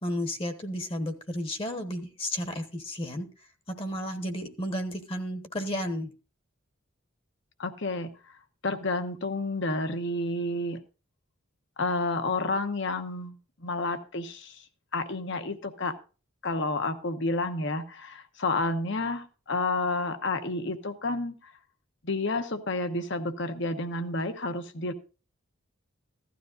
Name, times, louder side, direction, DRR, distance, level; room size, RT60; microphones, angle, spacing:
voice 1, 0.0-3.3 3.8-6.1, equal, 25° left, 7 dB, 1.1 m, -32 dB
voice 2, 7.6-8.4 8.6-10.8 11.8-13.3 13.6-14.6 14.9-16.0 16.4-21.5 22.0-24.9, left 2 dB, 60° left, 9 dB, 1.1 m, -30 dB
16.0 x 12.5 x 2.5 m, 0.33 s
head